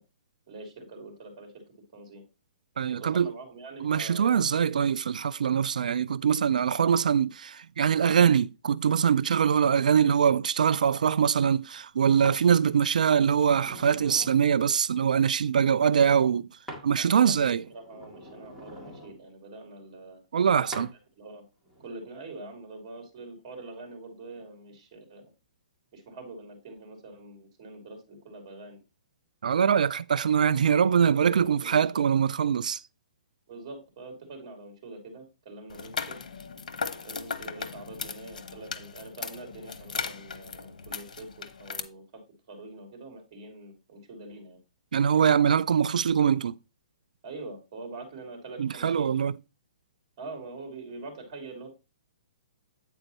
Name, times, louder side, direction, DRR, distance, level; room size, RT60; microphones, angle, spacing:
voice 1, 0.5-1.6 1.9-2.2 3.0-4.5 17.0-20.8 21.2-21.4 21.8-25.3 25.9-28.8 30.7-30.9 31.4-32.1 33.5-36.2 37.0-42.2 42.5-44.6 47.2-49.1 50.2-51.7, right 2 dB, 35° right, 3.1 m, -44 dB
voice 2, 2.8-3.3 3.8-16.5 16.8-17.6 20.3-20.9 29.4-32.8 44.9-46.5 48.6-49.3, right 7 dB, 85° right, 0.3 m, -23 dB
sound 1, 12.2-12.4 13.1-14.4 16.7-16.9 17.3-19.2 20.7-20.9 21.7-21.9, equal, ahead, 1.9 m, -44 dB
sound 2, 35.7-41.8, left 5 dB, 85° left, 1.0 m, -37 dB
9.0 x 4.4 x 4.1 m
hypercardioid pair, 170°, 4 cm